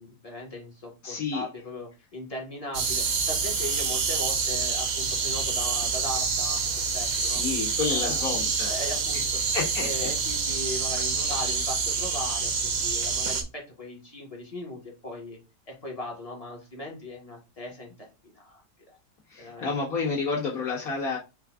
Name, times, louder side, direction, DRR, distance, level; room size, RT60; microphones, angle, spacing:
voice 1, 0.0-7.4 7.9-8.2 8.7-9.5 9.8-15.4 15.7-18.6 18.9-19.0 19.4-19.8, left 1 dB, 25° left, 1.2 m, -38 dB
voice 2, 1.0-1.5 7.2-8.7 9.5-9.9 19.3-21.2, left 4 dB, 60° left, 2.1 m, -30 dB
sound 1, 2.7-13.4, right 5 dB, 65° right, 1.1 m, -27 dB
5.1 x 2.5 x 3.5 m
omnidirectional pair, 1.7 m